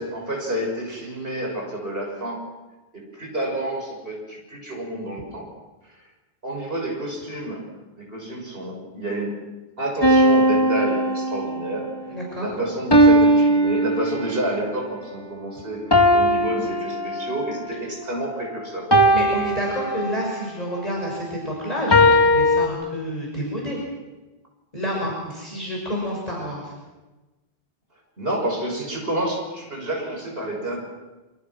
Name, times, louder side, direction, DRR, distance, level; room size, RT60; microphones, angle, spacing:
voice 1, 0.0-2.5 2.9-5.5 5.8-6.0 6.4-7.7 8.0-9.4 9.8-11.9 12.4-18.9 28.2-30.8, right 1 dB, 65° right, 0 dB, 6.8 m, -29 dB
sound 1, 10.0-11.8 12.9-14.5 15.9-17.6 18.9-20.4 21.9-22.7, equal, 25° left, 2.5 m, -18 dB
voice 2, 12.1-12.5 19.1-23.8 24.7-26.7, equal, 40° left, -3 dB, 6.4 m, -29 dB
27.5 x 25.5 x 6.2 m, 1.2 s
omnidirectional pair, 1.0 m